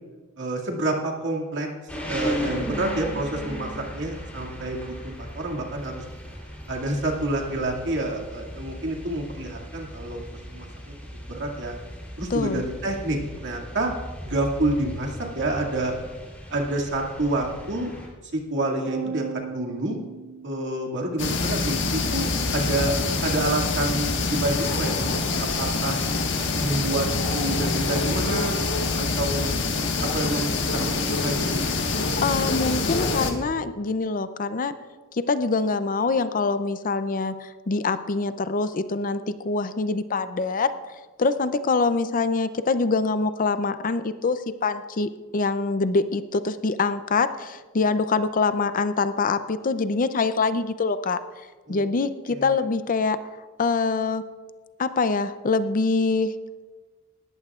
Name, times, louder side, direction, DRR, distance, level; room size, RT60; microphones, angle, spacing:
voice 1, 0.4-1.7 2.1-6.0 6.7-10.7 11.3-11.8 12.2-13.9 14.2-15.9 16.5-17.9 18.3-20.0 20.4-22.9 23.2-24.9 25.4-26.0 26.5-27.1 27.3-28.6 29.2-29.5 30.1-31.6 51.7-51.9 52.3-52.6, right 2 dB, 60° right, 0 dB, 2.2 m, -28 dB
sound 1, 1.9-18.1, equal, 5° left, 3.3 m, -37 dB
voice 2, 12.3-12.6 31.9-34.7 35.1-40.7 41.2-51.2 51.7-53.2 53.6-54.2 54.8-56.3, left 4 dB, 40° left, 12 dB, 0.5 m, -24 dB
sound 2, 18.9-21.3, right 6 dB, 40° right, 0.3 m, -36 dB
sound 3, 21.2-33.3, left 3 dB, 60° left, 1.5 m, -25 dB
19.0 x 14.5 x 2.4 m, 1.3 s
head